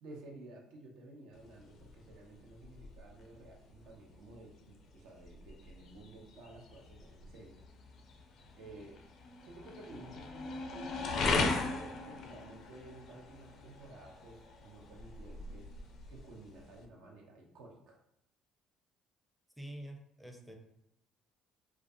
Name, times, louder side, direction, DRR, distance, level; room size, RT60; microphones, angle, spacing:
voice 1, 0.0-7.6 8.6-9.0 9.4-15.7 16.1-18.0, right 2 dB, 75° right, 0 dB, 0.6 m, -53 dB
sound 1, 1.3-16.9, left 3 dB, 60° left, 0.4 m, -40 dB
voice 2, 19.6-20.5, right 1 dB, ahead, 2 dB, 0.5 m, -47 dB
2.3 x 2.2 x 2.6 m, 0.76 s
supercardioid pair, 65°, 0 cm